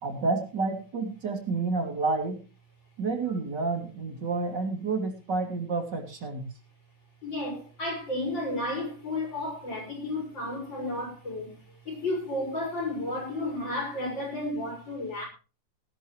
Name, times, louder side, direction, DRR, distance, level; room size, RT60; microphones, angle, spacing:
voice 1, 0.0-2.4 3.0-6.4, right 3 dB, 65° right, 3.4 m, -29 dB
voice 2, 7.2-15.3, left 1 dB, 75° left, 6.6 m, -32 dB
18.0 x 12.0 x 3.1 m
omnidirectional pair, 2.0 m